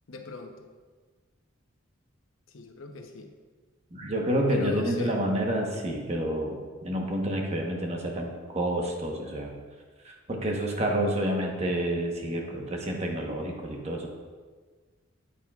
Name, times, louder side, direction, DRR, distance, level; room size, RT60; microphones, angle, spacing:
voice 1, 0.1-0.7 2.5-3.3 4.5-5.2, left 3 dB, 90° left, 4 dB, 0.9 m, -39 dB
voice 2, 3.9-9.6 10.0-14.1, right 1 dB, 35° right, 0 dB, 1.1 m, -29 dB
9.1 x 8.5 x 2.4 m, 1.5 s
head